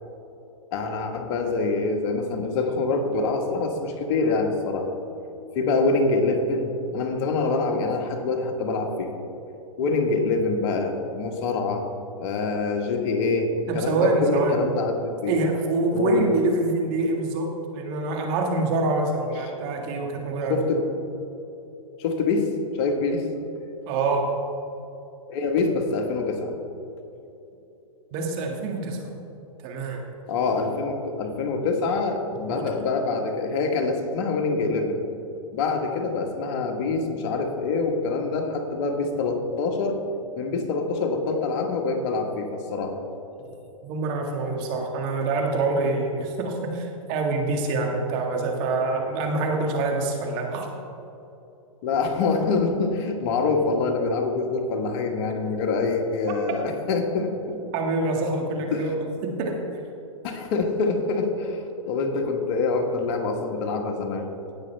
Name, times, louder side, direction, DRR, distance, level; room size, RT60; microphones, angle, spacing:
voice 1, 0.7-4.9 5.5-9.1 9.8-11.8 12.2-15.4 15.9-16.1 20.5-20.9 22.0-22.5 22.7-23.3 25.3-26.5 30.3-35.0 35.5-40.0 40.3-43.0 51.8-57.6 58.7-58.9 60.2-64.2, left 3 dB, 45° left, 3 dB, 1.4 m, -25 dB
voice 2, 13.7-14.6 15.3-20.6 23.9-24.4 28.1-29.1 29.6-30.0 32.5-32.6 43.8-50.7 57.7-58.9 59.2-59.5, right 3 dB, 45° right, 1 dB, 1.8 m, -25 dB
17.0 x 6.4 x 3.4 m, 2.9 s
hypercardioid pair, 130°, 18 cm